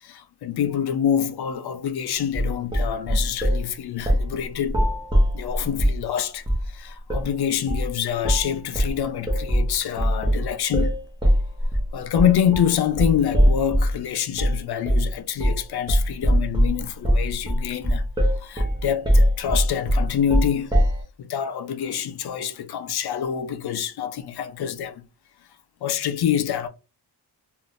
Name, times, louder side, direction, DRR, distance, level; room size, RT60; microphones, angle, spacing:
voice 1, 0.0-4.8 5.3-11.0 11.9-18.0 18.4-20.8 21.2-25.0 25.8-26.7, left 9 dB, 65° left, 0.5 m, -26 dB
sound 1, 2.3-3.6 4.0-4.3 4.6-6.0 6.4-6.7 7.1-7.3 7.7-7.9 8.2-8.5 8.7-14.0 14.4-14.6 14.8-15.1 15.4-15.6 15.9-21.0, equal, 10° right, 0.8 m, -21 dB
3.6 x 2.4 x 2.5 m
wide cardioid pair, 125°, 41 cm